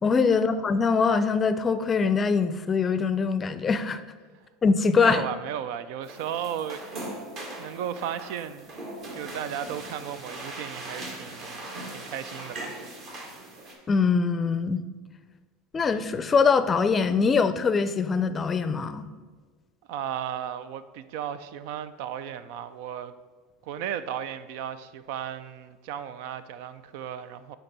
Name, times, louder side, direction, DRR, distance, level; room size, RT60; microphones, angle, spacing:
voice 1, 0.0-4.0 4.6-5.2 13.9-14.9 15.7-19.0, left 5 dB, 30° left, 12 dB, 0.5 m, -23 dB
voice 2, 5.0-6.8 7.6-8.7 9.1-12.8 19.9-23.1 23.6-27.6, right 9 dB, 70° right, 13 dB, 0.4 m, -35 dB
sound 1, 6.0-13.7, right 2 dB, 50° right, 1.9 m, -40 dB
8.5 x 2.9 x 6.0 m, 1.4 s
hypercardioid pair, 95°, 0 cm